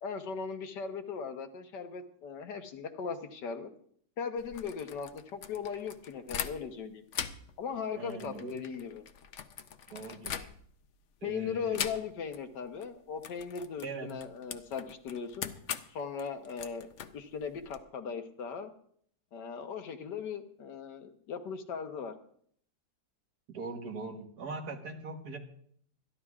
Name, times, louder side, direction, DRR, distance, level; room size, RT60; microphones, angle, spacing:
voice 1, 0.0-3.7 4.2-7.0 7.6-9.0 11.2-15.5 15.9-18.7 19.3-22.1, left 6 dB, 85° left, 6 dB, 1.7 m, -38 dB
sound 1, 4.4-6.8 7.1-10.9 11.7-12.4 12.7-12.9 13.2-17.8, left 8 dB, 60° left, 0.8 m, -41 dB
voice 2, 7.9-8.6 9.9-10.5 11.2-11.8 13.8-14.1 23.5-25.4, right 4 dB, 65° right, 4 dB, 1.8 m, -41 dB
26.0 x 11.0 x 2.4 m, 0.62 s
omnidirectional pair, 1.8 m